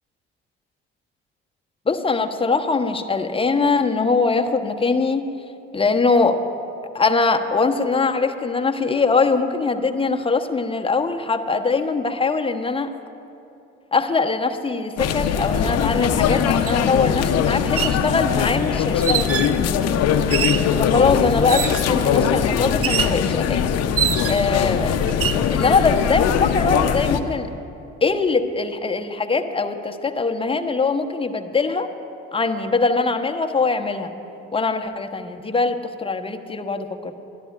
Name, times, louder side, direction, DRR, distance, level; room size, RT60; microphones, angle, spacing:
voice 1, 1.9-5.3 5.7-6.4 6.9-12.9 13.9-19.5 20.8-23.7 24.2-25.0 25.5-27.5 28.0-31.9 32.3-34.1 34.5-37.1, left 4 dB, 15° left, 5 dB, 1.0 m, -22 dB
sound 1, 15.0-27.2, left 8 dB, 50° left, 0.8 m, -21 dB
sound 2, 16.7-16.8 17.6-18.0 19.0-19.6 20.3-20.7 21.5-21.9 22.8-23.2 24.0-24.5 25.1-25.4, right 9 dB, 45° right, 0.7 m, -24 dB
24.0 x 13.5 x 2.5 m, 2.7 s
hypercardioid pair, 50°, 32 cm